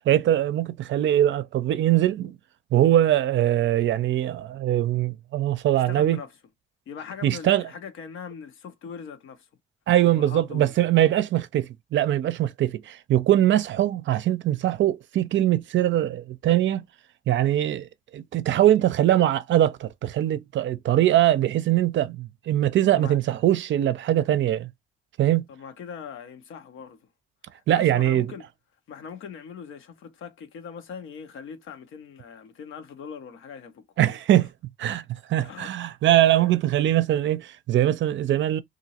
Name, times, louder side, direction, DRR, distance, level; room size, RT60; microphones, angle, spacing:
voice 1, 0.1-2.4 2.7-6.2 7.2-7.6 9.9-16.8 17.3-17.9 18.1-24.7 25.2-25.5 27.7-28.3 34.0-34.5 34.8-35.0 35.3-38.6, right 12 dB, 65° right, 0.5 m, -22 dB
voice 2, 5.7-6.3 6.9-9.5 10.2-10.7 22.9-23.2 25.5-27.0 27.5-28.5 28.9-34.2 35.4-35.7 36.1-36.5, left 6 dB, 75° left, 0.9 m, -41 dB
2.9 x 2.6 x 2.8 m
cardioid pair, 75°, 21 cm